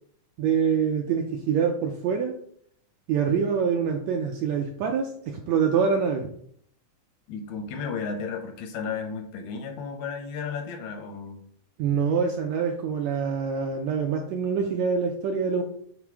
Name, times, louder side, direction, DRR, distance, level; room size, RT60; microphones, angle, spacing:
voice 1, 0.4-2.3 3.1-6.3 11.8-15.6, right 6 dB, 75° right, 3 dB, 1.7 m, -25 dB
voice 2, 7.3-11.4, left 5 dB, 75° left, 4 dB, 2.2 m, -33 dB
6.0 x 3.7 x 4.6 m, 0.65 s
omnidirectional pair, 3.6 m